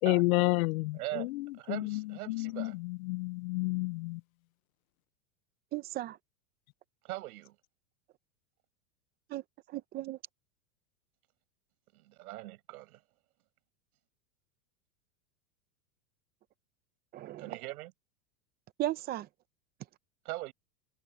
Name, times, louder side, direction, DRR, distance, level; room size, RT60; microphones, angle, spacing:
voice 1, 0.0-1.3 1.7-2.0 2.3-4.2, left 23 dB, 65° left, 0.5 m, -30 dB
voice 2, 0.9-1.3 1.6-2.8 7.0-7.6 11.9-13.0 17.4-17.9 20.3-20.5, right 17 dB, 70° right, 7.2 m, -41 dB
voice 3, 5.7-6.2 9.3-9.4 9.7-10.2 17.1-17.6 18.8-19.3, right 14 dB, 20° right, 0.6 m, -36 dB
supercardioid pair, 155°, 46 cm